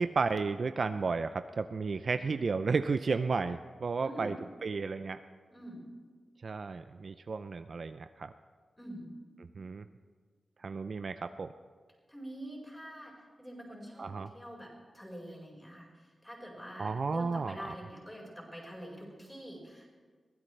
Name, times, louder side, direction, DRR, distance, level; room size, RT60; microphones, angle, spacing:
voice 1, 0.0-4.4 4.6-5.2 6.4-8.3 9.6-9.8 10.6-11.5 14.0-14.3 16.8-17.6, right 4 dB, 55° right, 10 dB, 0.4 m, -33 dB
voice 2, 4.0-4.4 5.5-5.8 8.8-9.1 12.1-13.1 13.4-14.7 14.9-15.9 16.2-19.9, equal, 10° left, -3 dB, 4.9 m, -45 dB
22.5 x 16.0 x 3.3 m, 1.5 s
wide cardioid pair, 125°, 0 cm